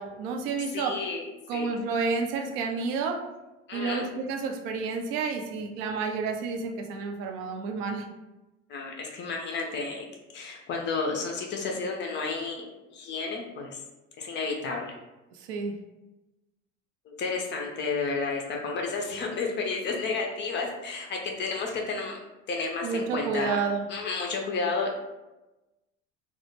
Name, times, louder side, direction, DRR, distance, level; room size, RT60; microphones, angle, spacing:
voice 1, 0.0-1.0 1.5-3.2 3.7-8.1 15.4-15.7 22.8-23.9, right 4 dB, 55° right, 4 dB, 0.5 m, -30 dB
voice 2, 0.7-1.7 3.7-4.0 8.7-10.0 10.3-12.7 12.9-13.8 14.2-14.9 17.1-22.2 22.5-23.6 23.9-24.9, left 4 dB, 30° left, 1 dB, 0.4 m, -31 dB
2.1 x 2.1 x 3.0 m, 1.0 s
figure-of-eight pair, 60°, 38 cm